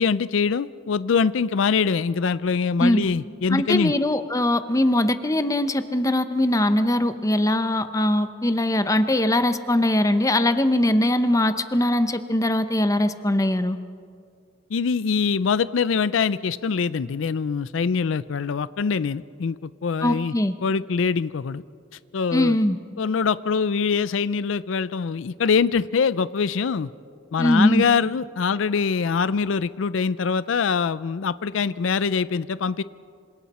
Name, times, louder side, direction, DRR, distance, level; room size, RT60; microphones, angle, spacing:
voice 1, 0.0-3.9 14.7-20.3 20.6-21.6 22.1-22.6 23.0-26.9 27.3-32.8, left 5 dB, 75° left, 17 dB, 0.4 m, -23 dB
voice 2, 3.5-13.8 20.0-20.5 22.3-22.8 27.4-27.8, left 1 dB, 15° left, 10 dB, 0.8 m, -21 dB
26.5 x 26.0 x 4.3 m, 2.3 s
head